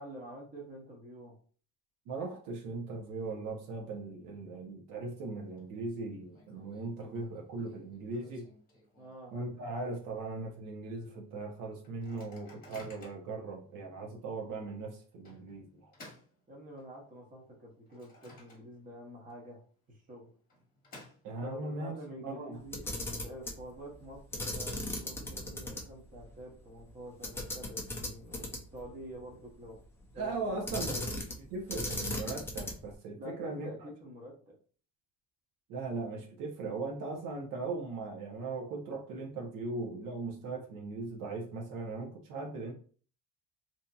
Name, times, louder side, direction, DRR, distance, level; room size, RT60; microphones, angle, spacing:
voice 1, 0.0-1.4 9.0-9.3 16.5-19.6 19.9-20.3 21.4-22.8 23.2-29.8 30.1-30.6 33.1-34.6, equal, 25° right, -1 dB, 0.8 m, -47 dB
voice 2, 2.1-8.5 9.3-15.9 21.2-22.0 22.2-22.6 30.1-33.7 35.7-42.7, right 3 dB, 65° right, 1 dB, 0.7 m, -39 dB
Microwave oven, 5.1-5.6 5.9-6.0 6.3-9.4 9.8-9.9 10.2-10.5 11.0-11.1 11.8-13.4 14.0-14.1 15.2-17.1 17.5-19.0 19.3-19.4 20.3-21.7, left 2 dB, 25° left, 1.2 m, -56 dB
Camera, 22.6-23.6 24.3-25.8 26.1-26.2 27.2-28.8 30.7-31.4 31.7-32.9, left 1 dB, 5° left, 0.3 m, -37 dB
2.7 x 2.6 x 2.3 m, 0.42 s
cardioid pair, 150°, 35 cm